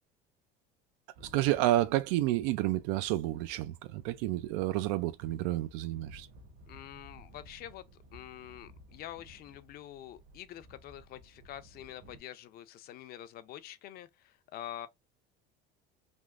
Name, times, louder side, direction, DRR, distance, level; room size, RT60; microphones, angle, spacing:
sound 1, 1.1-12.2, equal, 60° right, 1.1 m, -56 dB
voice 1, 1.2-6.3, right 15 dB, 85° right, 0.4 m, -30 dB
voice 2, 6.7-14.9, left 12 dB, 50° left, 0.5 m, -46 dB
3.5 x 2.5 x 2.4 m
cardioid pair, 125°, 20 cm